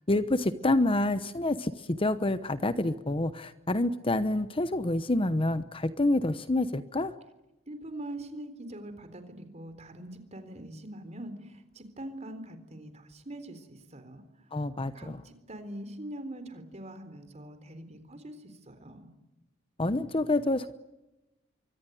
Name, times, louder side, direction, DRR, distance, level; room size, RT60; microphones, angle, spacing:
voice 1, 0.1-7.1 14.5-15.2 19.8-20.8, left 2 dB, 30° left, 12 dB, 0.9 m, -27 dB
voice 2, 7.7-14.6 14.9-19.1, right 1 dB, 35° right, 9 dB, 3.9 m, -43 dB
25.5 x 24.0 x 9.3 m, 0.99 s
head